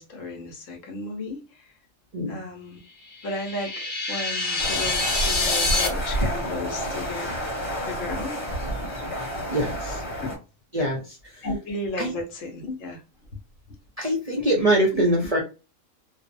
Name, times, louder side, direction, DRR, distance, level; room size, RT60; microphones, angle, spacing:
voice 1, 0.0-1.4 2.3-2.8 3.2-7.5 7.8-8.4 10.2-10.3 11.4-13.0 14.9-15.0, left 2 dB, 75° left, 1.2 m, -34 dB
sound 1, 3.1-5.9, left 3 dB, 55° left, 0.6 m, -26 dB
sound 2, 4.6-10.4, equal, 30° left, 1.0 m, -29 dB
voice 2, 9.5-10.0 10.7-11.2 12.0-12.1 14.0-15.4, right 1 dB, 45° right, 0.5 m, -23 dB
2.7 x 2.0 x 2.5 m
omnidirectional pair, 1.3 m